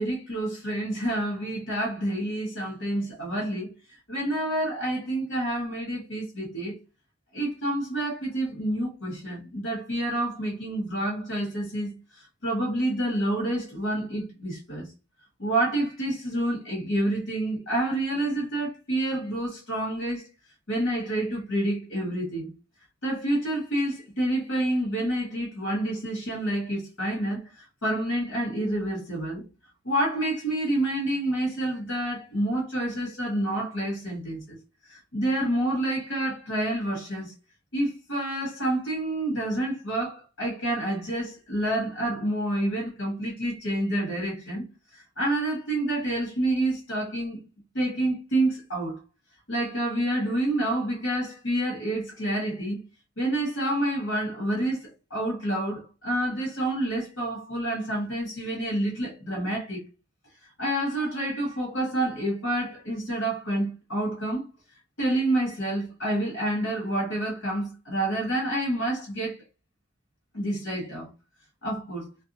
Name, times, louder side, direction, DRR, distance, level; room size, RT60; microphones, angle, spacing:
voice 1, 0.0-3.7 4.1-6.8 7.3-14.9 15.4-20.3 20.7-22.5 23.0-29.4 29.8-34.6 34.9-37.3 37.7-44.6 44.9-47.4 47.7-49.0 49.5-52.8 53.2-59.8 60.6-64.5 65.0-69.4 70.3-71.1 71.6-72.1, right 1 dB, 90° left, 1.3 m, -28 dB
2.6 x 2.2 x 2.6 m
head